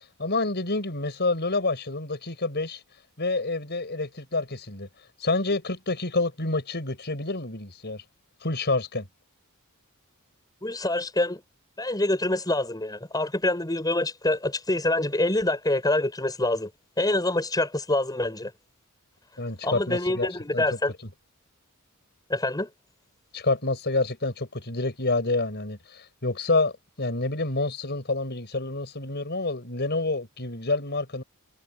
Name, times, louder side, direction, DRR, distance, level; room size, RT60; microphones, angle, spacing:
voice 1, 0.2-2.8 3.2-4.9 5.2-8.0 8.4-9.1 19.4-20.3 20.5-20.6 23.3-26.7 27.0-31.2, left 2 dB, 50° left, 5.8 m, -28 dB
voice 2, 10.6-11.4 11.8-16.7 17.0-18.5 19.6-20.9 22.3-22.7, left 2 dB, 15° left, 5.5 m, -26 dB
head